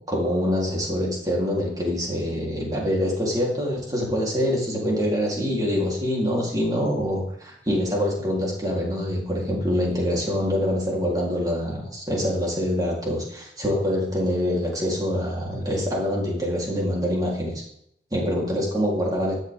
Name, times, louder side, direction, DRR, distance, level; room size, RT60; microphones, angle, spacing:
voice 1, 0.1-17.6 18.1-19.3, equal, 20° right, -3 dB, 3.7 m, -25 dB
13.5 x 11.0 x 3.7 m, 0.71 s
head